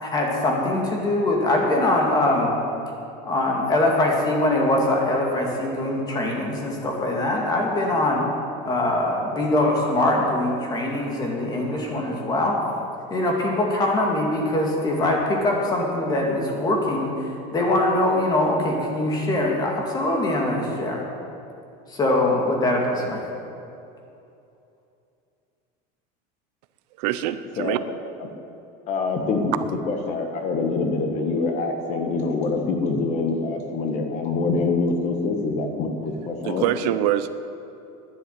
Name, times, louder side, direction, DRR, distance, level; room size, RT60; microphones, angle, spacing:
voice 1, 0.0-2.5 3.2-8.2 8.6-12.6 13.1-21.0 21.9-23.2, left 1 dB, 20° left, 0 dB, 2.2 m, -22 dB
voice 2, 27.0-27.8 36.4-37.3, right 12 dB, 85° right, 12 dB, 0.8 m, -24 dB
voice 3, 28.9-36.6, left 3 dB, 35° left, 4 dB, 1.4 m, -25 dB
11.5 x 10.0 x 9.3 m, 2.7 s
cardioid pair, 175°, 20 cm